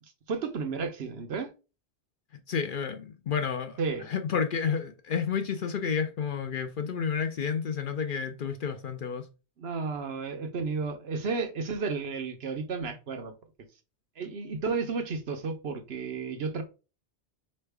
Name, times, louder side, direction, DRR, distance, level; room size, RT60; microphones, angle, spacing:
voice 1, 0.3-1.5 3.8-4.1 9.6-13.3 14.2-16.6, right 4 dB, 65° right, 1.1 m, -32 dB
voice 2, 2.5-3.8 4.1-9.3, left 6 dB, 55° left, 0.7 m, -30 dB
4.4 x 3.2 x 3.3 m
omnidirectional pair, 1.1 m